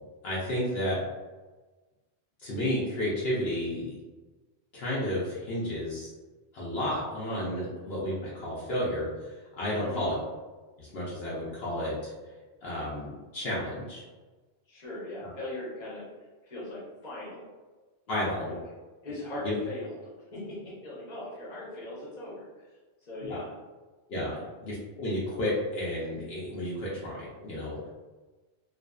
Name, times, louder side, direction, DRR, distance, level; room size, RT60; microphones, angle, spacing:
voice 1, 0.2-1.0 2.4-3.9 4.7-6.1 6.5-10.2 10.8-12.0 12.6-14.0 18.1-18.6 19.4-19.6 23.2-23.4 24.1-27.8, left 1 dB, 70° left, -7 dB, 0.9 m, -32 dB
voice 2, 9.8-10.1 14.7-16.1 16.4-17.5 18.1-18.6 19.0-22.5 23.0-23.5 24.3-24.5, left 1 dB, 45° left, -6 dB, 0.9 m, -40 dB
2.5 x 2.4 x 2.2 m, 1.3 s
omnidirectional pair, 1.1 m